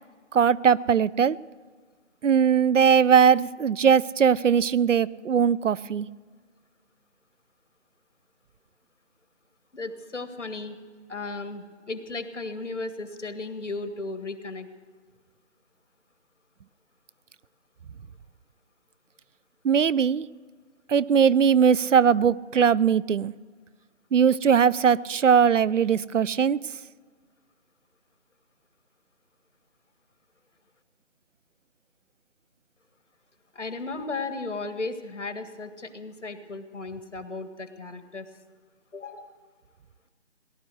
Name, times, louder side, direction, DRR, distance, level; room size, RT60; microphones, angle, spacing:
voice 1, 0.3-1.4 2.2-6.1 19.6-20.3 20.9-23.3 24.1-26.6, right 7 dB, 85° right, 21 dB, 0.6 m, -20 dB
voice 2, 9.7-10.8 11.1-14.7 33.5-38.3 38.9-39.3, left 3 dB, 75° left, 8 dB, 1.9 m, -35 dB
18.5 x 11.5 x 6.3 m, 1.5 s
figure-of-eight pair, 180°, 36 cm